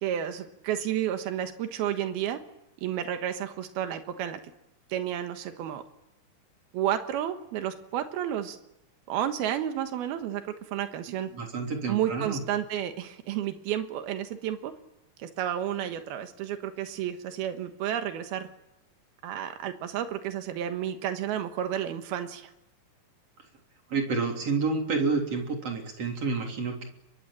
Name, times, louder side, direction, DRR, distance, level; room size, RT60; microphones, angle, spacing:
voice 1, 0.0-2.4 2.8-4.4 4.9-5.8 6.7-8.6 9.1-10.4 10.7-11.3 11.9-14.7 15.2-18.5 19.2-22.5, right 10 dB, 85° right, 8 dB, 3.3 m, -31 dB
voice 2, 11.3-12.4 23.9-26.9, right 4 dB, 40° right, 2 dB, 4.3 m, -29 dB
23.5 x 23.0 x 8.9 m, 0.89 s
omnidirectional pair, 4.3 m